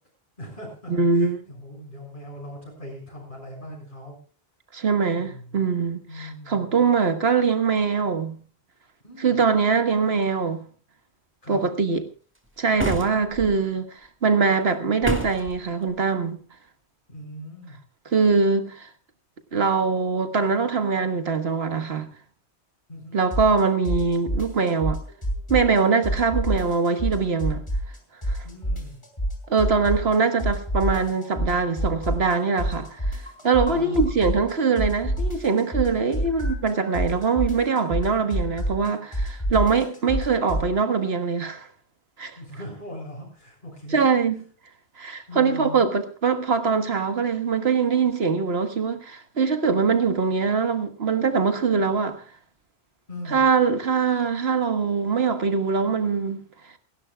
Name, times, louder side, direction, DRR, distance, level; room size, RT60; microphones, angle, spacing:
voice 1, 0.4-4.2 5.1-5.7 6.1-6.8 9.0-9.4 11.4-11.6 17.1-17.8 22.9-23.2 28.4-29.0 33.7-34.1 35.9-36.2 42.4-44.1 45.3-45.8 53.1-53.4, left 1 dB, 50° left, 7.0 m, -39 dB
voice 2, 0.9-1.4 4.7-8.4 9.2-10.7 11.5-12.0 12.6-16.4 18.1-18.9 19.5-22.1 23.1-25.0 25.5-27.6 28.3-28.4 29.5-41.7 42.2-42.4 43.9-44.3 45.0-52.2 53.3-56.4, right 5 dB, 70° right, 1.8 m, -23 dB
sound 1, 12.8-13.5 15.0-15.5, right 1 dB, 10° right, 2.0 m, -28 dB
sound 2, 23.3-23.6 23.9-25.8 26.0-28.0 28.2-30.1 30.4-34.5 34.8-40.7, equal, 25° left, 4.1 m, -27 dB
28.0 x 12.0 x 2.3 m
omnidirectional pair, 1.1 m